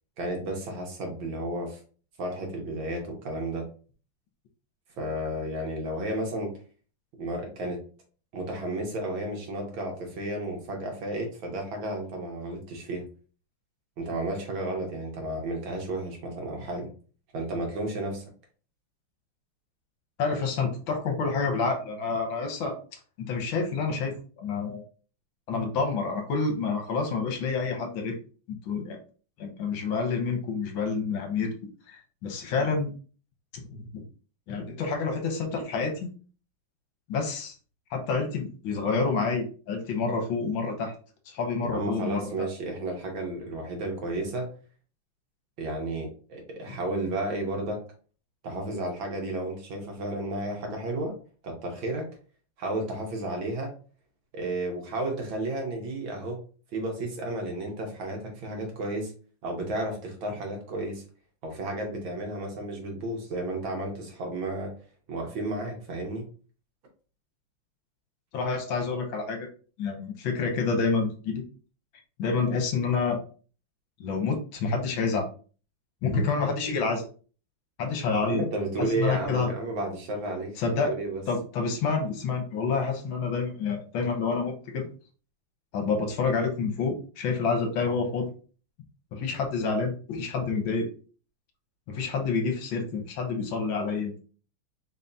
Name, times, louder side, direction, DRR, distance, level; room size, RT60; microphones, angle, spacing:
voice 1, 0.2-1.8 2.2-3.7 5.0-6.5 7.2-7.8 8.3-13.1 14.0-16.9 17.3-18.2 41.6-44.5 45.6-47.8 48.4-51.2 51.4-52.1 52.6-53.7 54.3-56.4 56.7-59.1 59.4-61.0 61.4-64.7 65.1-66.3 78.2-81.2, right 2 dB, 70° right, 1 dB, 1.7 m, -32 dB
voice 2, 20.2-22.8 23.3-24.8 25.5-28.2 28.7-29.0 29.4-31.5 31.9-32.9 33.5-34.0 34.5-36.1 37.1-37.5 37.9-40.9 41.3-42.3 68.3-69.5 69.8-71.4 72.2-73.2 74.0-75.3 76.0-77.1 77.8-78.4 78.8-79.5 80.6-80.9 81.3-84.9 85.7-88.3 89.1-90.9 91.9-94.2, left 4 dB, 70° left, 4 dB, 1.5 m, -28 dB
3.9 x 3.4 x 2.6 m, 0.39 s
omnidirectional pair, 2.3 m